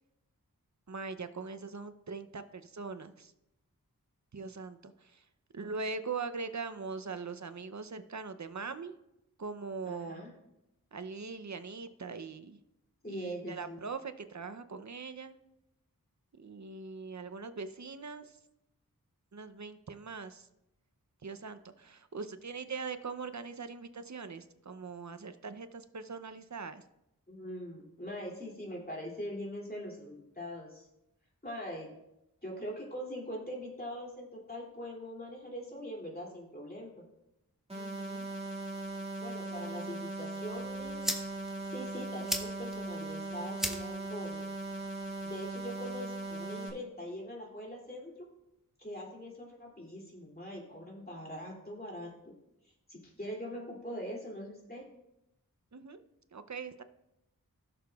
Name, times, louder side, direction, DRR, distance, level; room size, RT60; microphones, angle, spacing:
voice 1, 0.9-3.3 4.3-5.2 5.5-9.0 9.4-10.2 10.9-12.6 13.1-15.4 16.4-18.4 19.3-20.5 21.2-26.8 37.7-38.3 55.7-56.0 56.3-56.8, right 4 dB, 55° right, 11 dB, 0.7 m, -41 dB
voice 2, 9.8-10.3 13.0-13.8 27.3-30.9 31.4-31.9 32.4-37.0 39.2-41.0 41.6-44.4 45.2-48.3 48.8-52.3 52.9-54.8, equal, 25° left, -3 dB, 2.7 m, -42 dB
sound 1, 37.7-46.7, right 2 dB, 15° right, 2.1 m, -39 dB
sound 2, 40.4-46.4, equal, ahead, 1.2 m, -41 dB
17.0 x 6.7 x 2.4 m, 0.87 s
wide cardioid pair, 40°, 35 cm